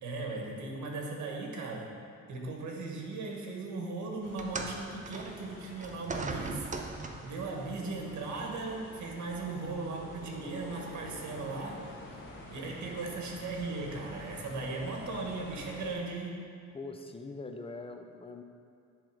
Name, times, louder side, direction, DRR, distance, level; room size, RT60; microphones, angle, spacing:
voice 1, 0.0-1.9 2.3-6.7 7.2-12.2 12.5-16.5, right 3 dB, 70° right, 0 dB, 1.5 m, -38 dB
sound 1, 4.2-16.0, left 1 dB, 85° left, 1.8 m, -48 dB
sound 2, 4.4-7.4 8.4-8.6 9.4-9.5, right 3 dB, 25° right, 0.6 m, -39 dB
sound 3, 10.7-15.9, left 2 dB, 40° left, 1.2 m, -50 dB
voice 2, 16.7-18.4, left 3 dB, 20° left, 5 dB, 0.6 m, -42 dB
10.5 x 3.6 x 5.0 m, 2.5 s
cardioid pair, 90°, 30 cm